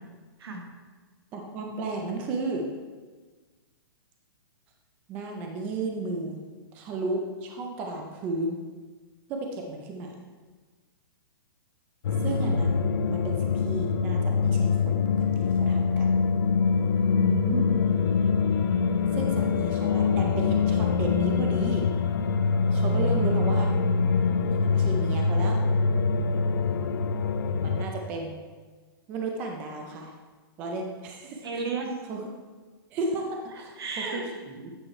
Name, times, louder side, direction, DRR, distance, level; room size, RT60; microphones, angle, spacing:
voice 1, 1.3-2.6 5.1-6.4 6.7-8.6 9.3-10.2 12.2-16.1 19.1-21.9 22.7-23.7 24.5-25.6 27.6-28.4 29.1-30.1 30.6-31.6 32.1-32.2 32.9-34.7, right 2 dB, 10° right, 2 dB, 0.4 m, -33 dB
sound 1, 12.0-27.9, left 5 dB, 60° left, 0.5 m, -24 dB
voice 2, 16.9-17.6 31.4-31.9 33.8-34.3, right 3 dB, 85° right, 1 dB, 1.6 m, -32 dB
8.8 x 4.3 x 4.7 m, 1.4 s
hypercardioid pair, 175°, 13 cm